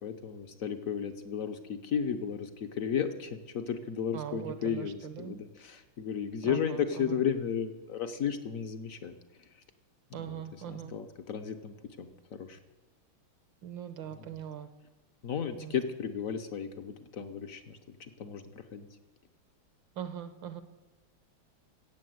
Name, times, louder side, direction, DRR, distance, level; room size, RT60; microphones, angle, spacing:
voice 1, 0.0-9.1 10.1-10.3 10.7-12.6 14.2-14.3 15.2-18.9, left 7 dB, 60° left, 8 dB, 0.9 m, -34 dB
voice 2, 4.1-5.3 6.4-7.0 10.1-10.9 13.6-14.7 15.6-15.7 20.0-20.6, right 10 dB, 70° right, 11 dB, 1.4 m, -41 dB
16.5 x 7.4 x 7.8 m, 1.2 s
omnidirectional pair, 2.3 m